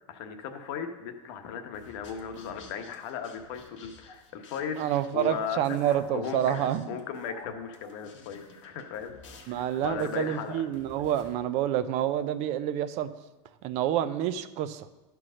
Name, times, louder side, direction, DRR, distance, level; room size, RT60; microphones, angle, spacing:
voice 1, 0.1-4.8 5.1-9.1 9.5-10.6, left 7 dB, 65° left, 6 dB, 1.1 m, -37 dB
sound 1, 1.7-11.3, left 3 dB, 90° left, 1.5 m, -52 dB
voice 2, 4.8-7.0 9.5-13.1 13.6-14.9, right 11 dB, 45° right, 12 dB, 0.5 m, -28 dB
11.0 x 4.7 x 6.3 m, 1.1 s
supercardioid pair, 145°, 16 cm